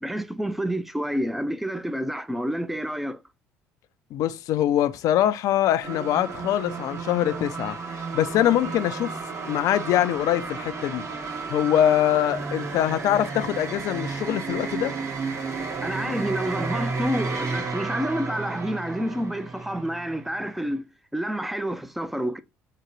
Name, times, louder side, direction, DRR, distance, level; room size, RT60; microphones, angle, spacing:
voice 1, 0.0-3.2 15.8-22.4, equal, 5° right, 0.5 m, -29 dB
voice 2, 4.1-9.1 9.5-11.0 11.5-15.0, left 12 dB, 60° left, 0.4 m, -23 dB
sound 1, 5.8-20.7, right 4 dB, 50° right, 1.7 m, -32 dB
3.8 x 2.2 x 3.1 m
hypercardioid pair, 65°, 7 cm